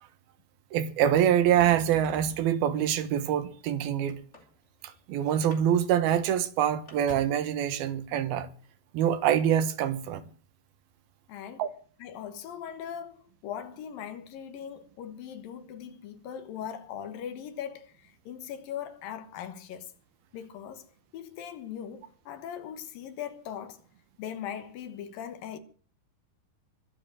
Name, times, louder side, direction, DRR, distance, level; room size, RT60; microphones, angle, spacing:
voice 1, 0.7-4.2 4.8-8.5 8.9-10.2 11.6-11.7, right 10 dB, 80° right, 3.1 m, -25 dB
Motor vehicle (road), 1.5-2.7 3.5-5.0 5.3-5.6 5.9-6.0 6.4-7.5 8.5-8.7, left 1 dB, 20° left, 2.8 m, -48 dB
voice 2, 11.3-11.6 12.0-19.9 20.3-20.9 21.1-23.8 24.2-25.6, left 9 dB, 70° left, 2.9 m, -40 dB
22.5 x 7.7 x 7.6 m
omnidirectional pair, 4.4 m